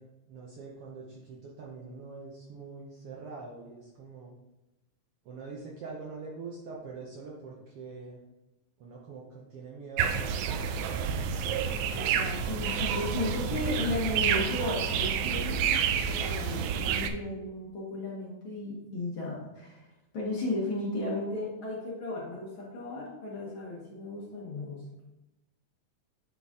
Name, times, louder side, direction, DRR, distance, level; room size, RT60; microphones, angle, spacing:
voice 1, 0.0-4.3 5.2-8.2 8.8-11.2, right 4 dB, 70° right, -3 dB, 1.4 m, -44 dB
sound 1, 10.0-17.1, right 7 dB, 90° right, 2.0 m, -29 dB
voice 2, 11.9-24.8, left 2 dB, 55° left, -4 dB, 1.6 m, -35 dB
8.2 x 3.9 x 3.6 m, 0.98 s
omnidirectional pair, 3.4 m